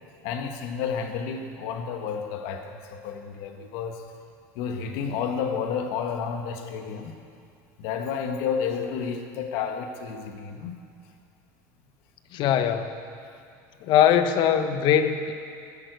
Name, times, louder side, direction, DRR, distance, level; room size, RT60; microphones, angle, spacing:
voice 1, 0.2-4.0 4.5-7.1 7.8-10.7, left 6 dB, 75° left, 5 dB, 1.5 m, -31 dB
voice 2, 12.3-12.9 13.8-15.3, left 9 dB, 55° left, 9 dB, 1.1 m, -21 dB
15.0 x 11.0 x 8.1 m, 2.5 s
supercardioid pair, 115°, 9 cm